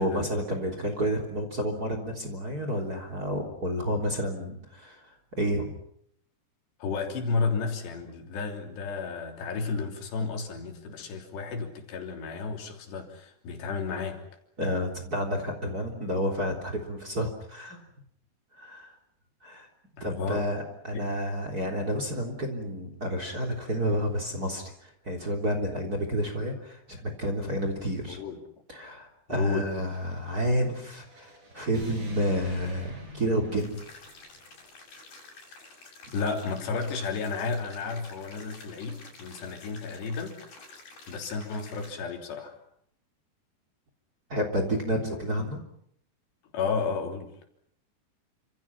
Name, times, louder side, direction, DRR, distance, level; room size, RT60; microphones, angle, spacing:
voice 1, 0.0-5.7 14.6-17.8 18.5-18.9 19.4-19.7 20.0-28.2 28.7-33.8 44.3-45.6, equal, 25° right, 5 dB, 3.4 m, -30 dB
voice 2, 6.8-14.2 20.0-20.5 20.9-21.1 28.1-28.4 29.3-29.7 36.1-40.5 41.1-42.6 46.5-47.4, left 4 dB, 70° left, 4 dB, 5.3 m, -32 dB
sound 1, 29.8-34.5, right 1 dB, 45° right, 9.3 m, -46 dB
sound 2, 33.6-41.9, left 3 dB, 55° left, 9.1 m, -50 dB
29.5 x 27.0 x 6.0 m, 0.70 s
omnidirectional pair, 5.0 m